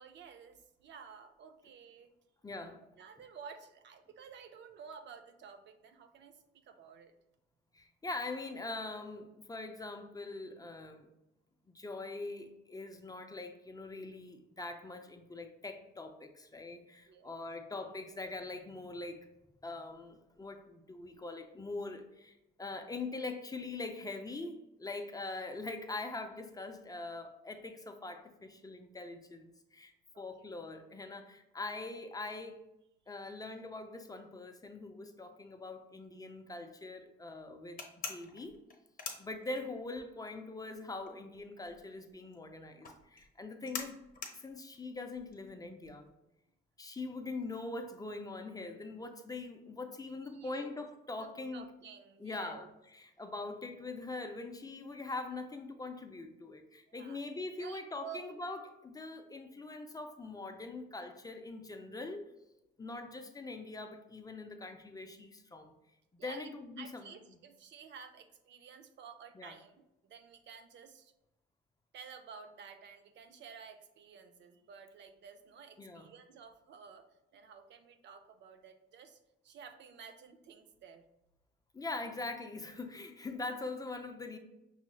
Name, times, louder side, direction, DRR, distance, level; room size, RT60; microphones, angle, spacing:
voice 1, 0.0-2.1 2.6-7.1 17.1-17.4 30.1-30.2 50.2-50.7 51.2-52.7 56.9-57.2 57.6-58.3 66.2-66.5 66.8-71.1 71.9-81.0, right 6 dB, 65° right, 7 dB, 0.5 m, -52 dB
voice 2, 2.4-2.8 7.7-11.1 11.7-19.3 19.6-32.6 33.1-38.6 39.2-44.0 44.3-46.1 46.8-51.7 52.2-52.7 53.2-62.2 62.8-65.7 66.1-67.1 69.4-69.5 75.8-76.1 81.7-84.4, left 3 dB, 20° left, 6 dB, 0.4 m, -43 dB
sound 1, 37.8-40.0 40.3-46.1, left 5 dB, 45° left, 0.8 m, -44 dB
5.5 x 3.0 x 2.2 m, 0.90 s
cardioid pair, 90°, 20 cm